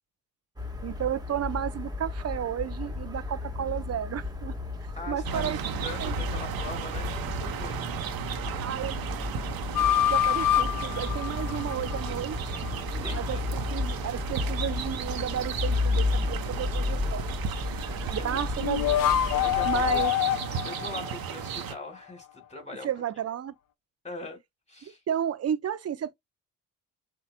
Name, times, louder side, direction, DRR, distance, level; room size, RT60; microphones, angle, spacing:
sound 1, 0.6-20.1, left 3 dB, 10° right, 1.4 m, -33 dB
voice 1, 0.8-4.6 5.1-5.6 6.0-6.1 8.6-9.0 10.1-12.6 13.1-17.3 18.1-19.0 19.7-20.1 22.8-23.5 25.1-26.1, right 9 dB, 35° right, 0.7 m, -32 dB
voice 2, 4.9-7.8 13.0-13.5 17.7-17.9 18.3-18.4 19.4-20.0 20.6-22.9 24.0-24.4 24.7-25.0, left 2 dB, 15° left, 2.6 m, -41 dB
sound 2, 5.2-21.7, right 8 dB, 55° right, 1.0 m, -35 dB
sound 3, 9.8-12.1 18.6-21.9, left 11 dB, 50° left, 0.6 m, -26 dB
6.4 x 2.4 x 2.2 m
hypercardioid pair, 55°, 44 cm